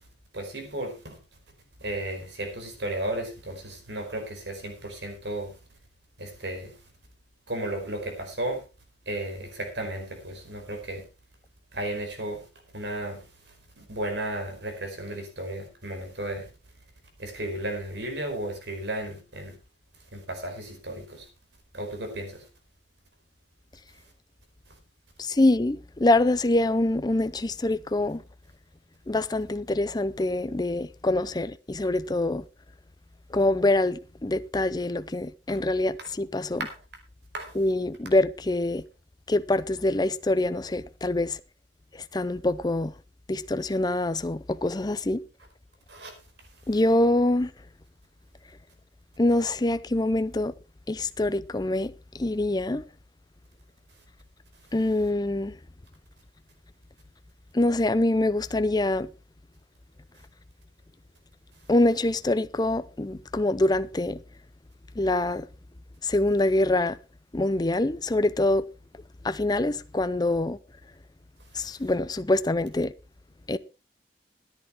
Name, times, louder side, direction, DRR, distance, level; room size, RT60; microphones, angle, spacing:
voice 1, 0.3-1.2 1.8-5.5 6.2-6.7 7.5-8.6 9.1-11.0 11.7-12.4 12.7-13.2 13.8-16.5 17.2-19.5 20.1-21.3 21.7-22.4 35.5-35.6 36.6-36.7 37.3-37.5 45.9-46.1, right 1 dB, 70° right, 4.8 m, -34 dB
voice 2, 25.2-28.2 29.1-32.4 33.3-36.7 37.5-38.8 39.3-41.4 41.9-42.9 43.3-45.2 46.7-47.5 49.2-50.5 50.9-52.8 54.7-55.5 57.5-59.1 61.7-64.2 65.0-65.5 66.0-67.0 67.3-68.6 69.2-70.6 71.5-72.9 73.5-73.6, left 2 dB, 20° left, 0.5 m, -25 dB
14.0 x 10.5 x 4.4 m
head